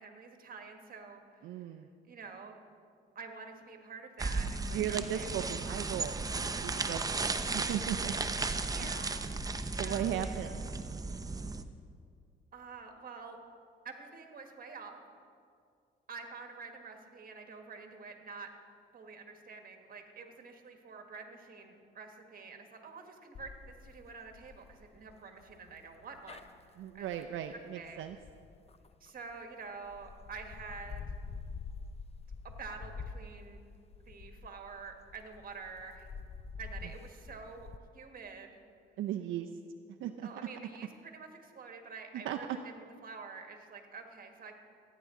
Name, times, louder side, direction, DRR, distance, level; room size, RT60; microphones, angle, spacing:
voice 1, 0.0-1.8 2.1-2.6 3.1-5.3 8.7-9.3 9.7-10.6 12.5-13.4 13.8-15.0 16.1-18.5 18.9-27.1 27.7-28.0 29.0-31.0 32.4-33.6 34.1-36.1 36.6-37.7 37.9-38.5 40.2-44.6, right 4 dB, 45° right, 4 dB, 1.5 m, -48 dB
voice 2, 1.4-1.9 4.7-8.1 8.8-8.9 9.8-10.6 26.8-28.2 39.0-39.5 40.0-40.3 42.2-42.4, right 10 dB, 80° right, 5 dB, 0.5 m, -37 dB
sound 1, 4.2-11.6, right 3 dB, 20° right, 0.6 m, -35 dB
sound 2, 23.3-29.3 29.8-37.8, left 5 dB, 30° left, 0.5 m, -47 dB
15.5 x 9.3 x 3.7 m, 2.3 s
cardioid pair, 90°, 20 cm